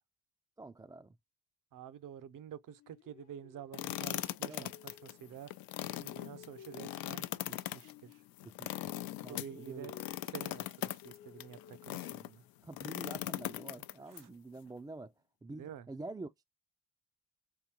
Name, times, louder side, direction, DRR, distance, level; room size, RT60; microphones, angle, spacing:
voice 1, 0.6-1.2 4.5-4.7 8.4-8.8 9.2-9.9 12.6-15.1 15.4-16.4, right 2 dB, 10° right, 0.3 m, -47 dB
voice 2, 1.7-5.5 5.9-8.2 9.3-9.9 10.3-12.4 14.1-14.3 15.6-15.9, right 9 dB, 65° right, 0.7 m, -49 dB
sound 1, 2.7-5.4 5.7-8.7 8.9-12.5, left 8 dB, 60° left, 0.8 m, -57 dB
sound 2, 3.7-12.3 12.7-14.2, left 15 dB, 85° left, 0.5 m, -40 dB
3.7 x 2.6 x 3.0 m
cardioid pair, 80°, 34 cm